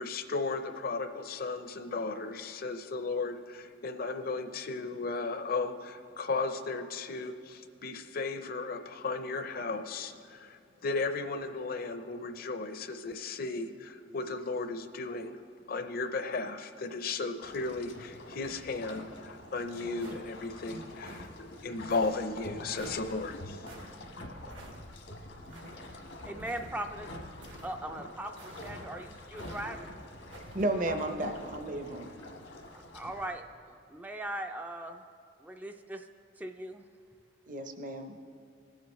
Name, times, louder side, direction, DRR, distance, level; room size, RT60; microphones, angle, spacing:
voice 1, 0.0-15.4 15.7-23.8, left 3 dB, 50° left, 8 dB, 0.6 m, -35 dB
sound 1, 17.4-33.3, left 1 dB, 80° left, 1.2 m, -46 dB
sound 2, 20.0-20.5 21.0-21.3 21.9-22.1 22.8-23.1 23.6-23.9 24.5-24.8 25.5-25.8 26.4-26.9 27.4-27.7 28.3-28.8 29.3-29.7 30.3-30.7, right 2 dB, 75° right, 1.3 m, -49 dB
voice 2, 26.2-27.1 27.6-29.9 32.7-35.0 35.4-36.1 36.4-36.9, right 1 dB, 10° right, 5 dB, 0.3 m, -40 dB
voice 3, 30.5-32.1 37.5-38.2, right 1 dB, 45° right, 6 dB, 0.7 m, -33 dB
18.0 x 7.5 x 3.1 m, 2.4 s
head